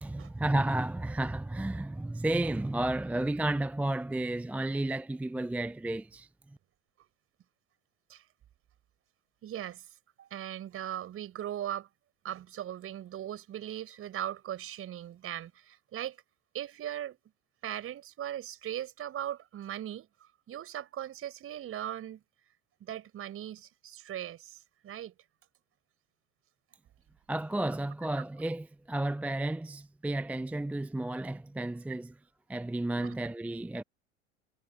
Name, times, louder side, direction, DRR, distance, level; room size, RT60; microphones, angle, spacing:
voice 1, 0.0-6.3 27.3-32.1 32.5-33.8, right 1 dB, 5° right, 0.6 m, -32 dB
voice 2, 9.4-9.9 10.2-11.9 12.2-16.2 16.5-17.2 17.6-20.1 20.5-22.2 22.8-25.1 32.9-33.2, right 11 dB, 40° right, 5.0 m, -39 dB
figure-of-eight pair, 75°, 34 cm